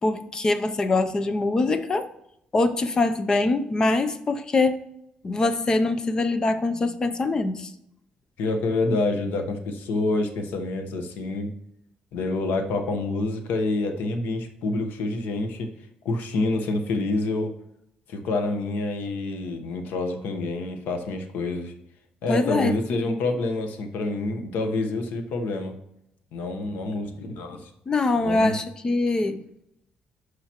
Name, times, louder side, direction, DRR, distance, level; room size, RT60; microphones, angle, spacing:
voice 1, 0.0-2.1 2.5-4.8 5.2-7.7 22.3-23.1 27.9-29.4, left 2 dB, 25° left, 10 dB, 0.5 m, -23 dB
voice 2, 8.4-11.5 12.1-15.7 16.0-17.5 18.1-21.7 22.2-25.8 26.3-27.7 28.1-28.6, left 2 dB, 90° left, 5 dB, 1.1 m, -27 dB
12.0 x 4.9 x 2.9 m, 0.79 s
cardioid pair, 170°, 3 cm